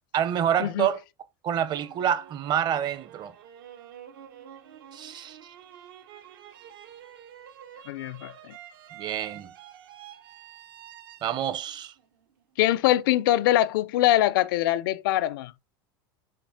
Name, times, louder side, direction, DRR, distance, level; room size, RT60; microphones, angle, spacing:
voice 1, 0.1-1.0 1.4-3.3 4.9-5.4 9.0-9.5 11.2-11.9, right 9 dB, 40° right, 0.8 m, -27 dB
sound 1, 1.6-12.6, right 10 dB, 80° right, 1.2 m, -48 dB
voice 2, 7.9-8.5 12.6-15.5, left 14 dB, 75° left, 0.5 m, -23 dB
6.5 x 4.2 x 4.2 m
supercardioid pair, 110°, 11 cm